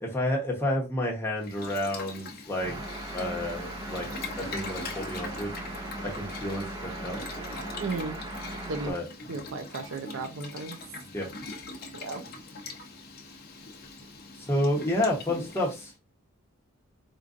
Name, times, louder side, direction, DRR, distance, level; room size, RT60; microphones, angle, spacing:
voice 1, 0.0-2.7 3.1-4.1 4.4-5.5 6.0-7.2 8.8-9.1 11.1-11.3 14.4-15.9, left 1 dB, 10° left, 0.9 m, -30 dB
Boiling, 1.4-15.9, left 3 dB, 45° left, 0.6 m, -42 dB
sound 1, 2.6-8.9, right 1 dB, 15° right, 0.5 m, -38 dB
voice 2, 7.8-8.2 8.7-8.9 9.3-10.8 11.9-12.2, right 3 dB, 65° right, 0.5 m, -34 dB
4.4 x 2.5 x 2.5 m
head